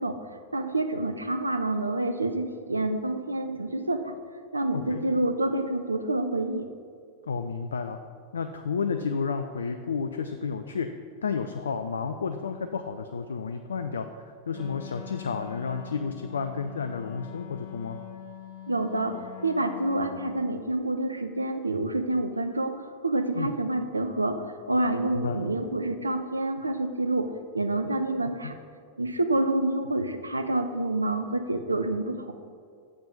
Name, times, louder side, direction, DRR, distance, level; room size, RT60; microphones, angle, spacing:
voice 1, 0.0-4.1 4.5-6.7 18.7-28.6 29.0-32.3, right 2 dB, 80° right, 8 dB, 0.4 m, -28 dB
voice 2, 4.7-5.0 7.3-8.0 8.3-10.9 11.2-14.1 14.5-18.0 23.3-23.5 25.1-25.4 28.2-28.5, left 5 dB, 70° left, 8 dB, 0.3 m, -31 dB
Wind instrument woodwind instrument, 14.5-20.6, left 11 dB, 50° left, 0.7 m, -43 dB
7.2 x 5.1 x 5.2 m, 2.2 s
figure-of-eight pair, 90°, 0 cm